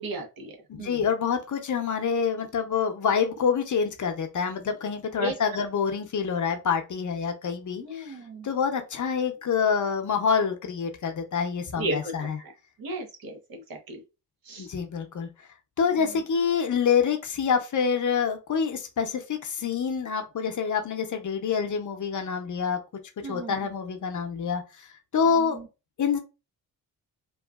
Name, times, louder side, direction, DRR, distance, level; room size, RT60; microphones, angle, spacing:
voice 1, 0.0-0.5 0.8-1.0 5.2-5.4 7.8-8.5 11.8-12.5 12.8-14.0 14.5-14.7 23.2-23.5 25.3-25.7, right 2 dB, 60° right, 1.0 m, -34 dB
voice 2, 0.7-8.2 8.4-12.4 14.6-15.3 15.8-22.8 23.2-24.9 25.1-25.6 26.0-26.2, left 6 dB, 50° left, 0.7 m, -26 dB
2.9 x 2.4 x 2.3 m
cardioid pair, 65°, 39 cm